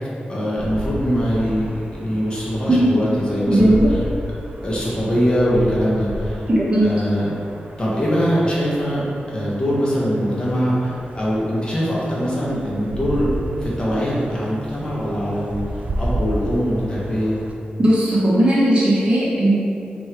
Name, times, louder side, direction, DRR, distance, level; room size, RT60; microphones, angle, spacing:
voice 1, 0.3-1.7 1.9-4.0 4.6-6.4 6.8-7.4 7.8-9.0 9.3-13.3 13.6-15.6 16.0-17.3, equal, 30° left, -7 dB, 1.2 m, -22 dB
sound 1, 0.6-17.5, right 1 dB, 50° right, 0.5 m, -32 dB
voice 2, 3.5-3.9 6.5-6.9 17.8-19.6, right 1 dB, 30° right, -9 dB, 1.1 m, -16 dB
3.3 x 3.2 x 4.4 m, 2.5 s
wide cardioid pair, 85°, 3 cm